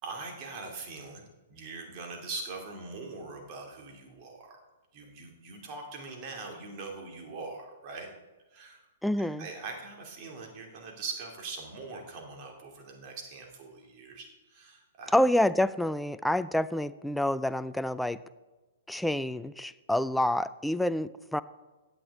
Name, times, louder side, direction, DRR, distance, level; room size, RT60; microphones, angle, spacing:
voice 1, 0.0-4.6 4.9-8.1 8.5-8.8 9.2-15.1, right 3 dB, 35° right, 1 dB, 2.6 m, -42 dB
voice 2, 9.0-9.5 15.1-18.2 18.9-21.4, left 1 dB, ahead, 15 dB, 0.4 m, -27 dB
16.0 x 9.5 x 3.7 m, 1.2 s
figure-of-eight pair, 110°, 0 cm